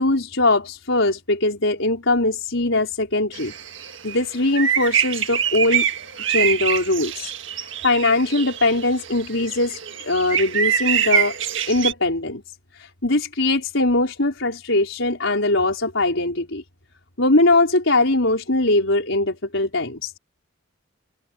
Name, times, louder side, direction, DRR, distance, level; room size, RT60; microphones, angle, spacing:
voice 1, 0.0-3.5 4.0-5.9 6.3-7.3 7.8-11.4 11.7-12.4 12.7-16.6 17.2-20.2, left 2 dB, 70° left, 4.9 m, -21 dB
sound 1, 3.3-11.9, right 8 dB, 65° right, 1.8 m, -24 dB
head